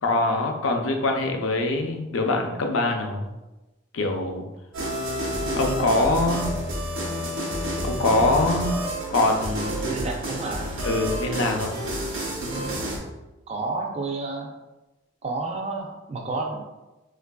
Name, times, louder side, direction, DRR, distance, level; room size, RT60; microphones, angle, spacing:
voice 1, 0.0-3.3 3.9-4.4 5.6-6.5 7.8-8.8 9.1-9.9 10.8-11.8, left 2 dB, 70° left, 3 dB, 0.5 m, -23 dB
sound 1, 4.7-13.0, equal, 75° right, 0.9 m, -29 dB
voice 2, 9.8-10.7 13.5-14.5 15.2-16.6, right 3 dB, 30° right, 1 dB, 0.3 m, -30 dB
4.6 x 2.5 x 2.2 m, 1.0 s
head